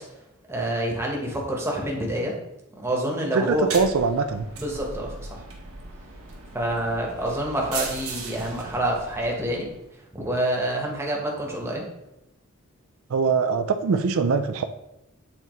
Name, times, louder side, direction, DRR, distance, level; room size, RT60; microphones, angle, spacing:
voice 1, 0.5-2.3 2.8-3.7 4.6-5.4 6.5-9.7 10.1-11.8, right 1 dB, 10° right, -1 dB, 1.0 m, -27 dB
voice 2, 3.3-4.5 13.1-14.6, right 5 dB, 70° right, 8 dB, 0.4 m, -22 dB
sound 1, 3.5-9.9, right 4 dB, 90° right, 1.4 m, -38 dB
7.6 x 4.0 x 3.1 m, 0.89 s
head